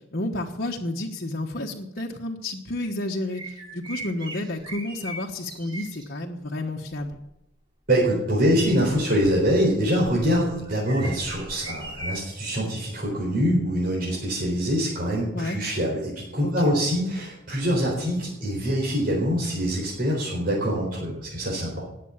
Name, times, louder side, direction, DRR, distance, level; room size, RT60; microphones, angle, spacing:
voice 1, 0.1-7.2 15.3-15.6 16.4-16.7, left 1 dB, 55° left, -1 dB, 1.3 m, -31 dB
sound 1, 3.3-6.1 6.9-7.3 7.9-12.6 13.1-13.2 15.0-15.1, right 1 dB, 25° right, 3.3 m, -40 dB
voice 2, 7.9-21.8, equal, 50° right, -4 dB, 4.3 m, -24 dB
20.0 x 7.8 x 7.2 m, 0.88 s
head